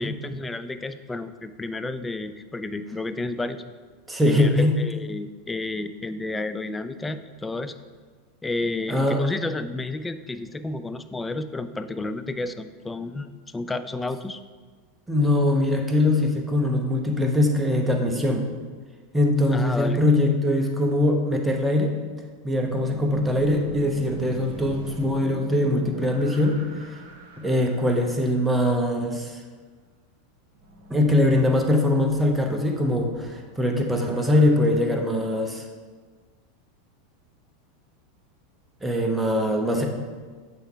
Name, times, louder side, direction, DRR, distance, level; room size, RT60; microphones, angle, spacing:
voice 1, 0.0-3.6 4.2-7.8 8.4-14.4 19.5-20.0, left 2 dB, 10° left, 10 dB, 0.3 m, -31 dB
voice 2, 4.1-4.7 8.9-9.2 15.1-18.5 19.1-21.9 22.4-26.6 26.9-27.0 27.4-29.4 30.9-35.7 38.8-39.9, left 1 dB, 5° right, 3 dB, 0.8 m, -22 dB
sound 1, 22.5-28.6 30.5-34.5, right 1 dB, 60° right, 0.9 m, -43 dB
8.0 x 3.4 x 4.5 m, 1.5 s
figure-of-eight pair, 85°, 0 cm